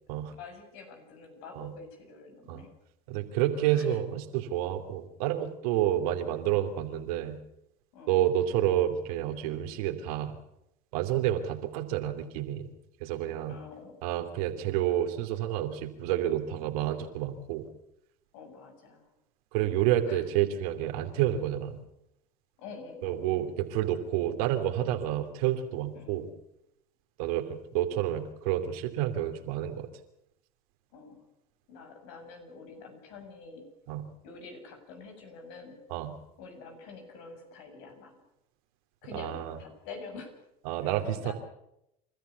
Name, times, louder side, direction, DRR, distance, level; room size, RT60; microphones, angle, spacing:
voice 1, 0.3-2.7 3.6-4.0 7.9-8.2 13.5-14.0 18.3-19.1 20.1-20.2 20.9-21.1 22.6-23.2 25.9-26.2 30.9-31.3 31.7-33.7 34.2-35.8 36.4-38.2 39.0-40.3 40.8-41.3, left 4 dB, 75° left, 4 dB, 7.3 m, -47 dB
voice 2, 3.1-7.4 8.1-10.3 10.9-12.7 13.0-13.6 14.0-17.7 19.5-21.8 23.0-26.3 27.2-29.9 33.9-34.1 35.9-36.1 39.1-39.6 40.6-41.3, right 12 dB, 80° right, 7 dB, 3.0 m, -29 dB
28.5 x 14.0 x 8.3 m, 0.82 s
supercardioid pair, 85°, 18 cm